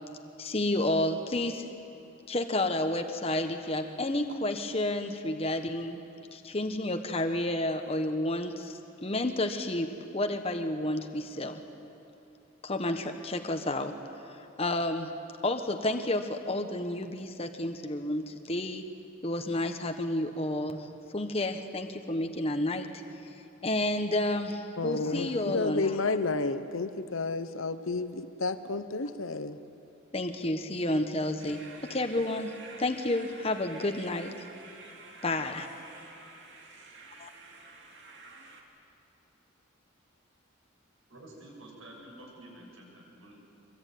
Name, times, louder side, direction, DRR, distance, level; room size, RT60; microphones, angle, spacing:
voice 1, 0.4-1.7 2.3-6.0 6.3-11.6 12.6-13.9 14.6-15.1 15.4-18.8 19.2-20.9 21.1-22.9 23.6-26.2 30.1-34.5 35.2-35.7 37.2-37.3, left 1 dB, 30° left, 1.2 m, -30 dB
voice 2, 24.8-29.6, left 3 dB, 80° left, 1.0 m, -31 dB
sound 1, 31.4-38.6, right 3 dB, 55° right, 2.9 m, -49 dB
voice 3, 41.1-43.3, right 1 dB, 85° right, 7.5 m, -49 dB
23.5 x 23.0 x 9.4 m
head